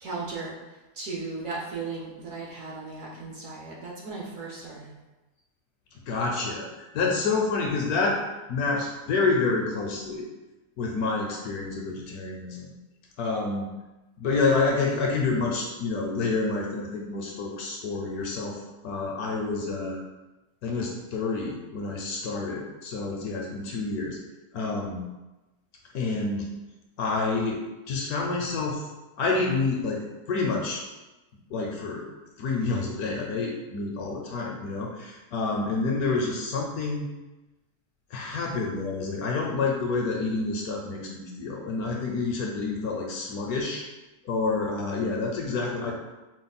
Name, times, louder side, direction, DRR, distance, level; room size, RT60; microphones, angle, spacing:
voice 1, 0.0-0.5 0.9-4.9, right 3 dB, 60° right, -3 dB, 1.0 m, -36 dB
voice 2, 6.0-6.7 6.9-8.2 8.5-10.2 10.8-12.7 13.2-13.7 14.2-20.0 20.6-24.2 24.5-25.0 25.9-26.5 27.0-27.6 27.9-28.8 29.2-30.0 30.3-30.8 31.5-32.0 32.4-37.1 38.1-43.8 44.2-45.9, left 3 dB, 70° left, 0 dB, 1.0 m, -28 dB
4.9 x 2.0 x 4.0 m, 1.1 s
omnidirectional pair, 1.8 m